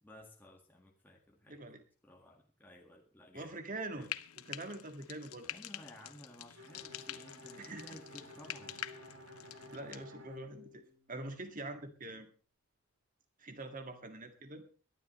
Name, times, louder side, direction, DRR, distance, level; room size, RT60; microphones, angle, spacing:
voice 1, 0.0-1.7 2.0-3.5 3.9-4.1 5.4-8.8 11.6-12.2, left 1 dB, 10° left, -1 dB, 1.8 m, -56 dB
voice 2, 1.5-1.8 3.3-4.1 4.4-5.5 7.6-8.0 9.7-10.8 11.1-12.3 13.4-14.6, right 2 dB, 40° right, 6 dB, 2.1 m, -44 dB
Frying (food), 4.0-10.0, left 12 dB, 85° left, 0.8 m, -46 dB
Bowed string instrument, 6.5-11.4, left 1 dB, 90° right, 3.5 m, -53 dB
21.5 x 12.0 x 3.2 m, 0.36 s
head